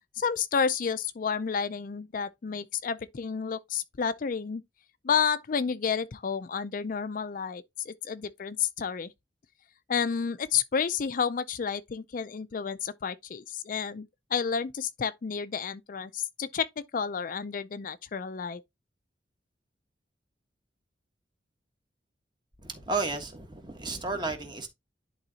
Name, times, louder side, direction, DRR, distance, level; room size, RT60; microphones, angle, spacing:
voice 1, 0.2-4.6 5.0-9.1 9.9-18.6, left 6 dB, 45° left, 0.4 m, -30 dB
voice 2, 22.6-24.7, right 3 dB, 25° right, 1.4 m, -33 dB
11.0 x 3.9 x 2.8 m
head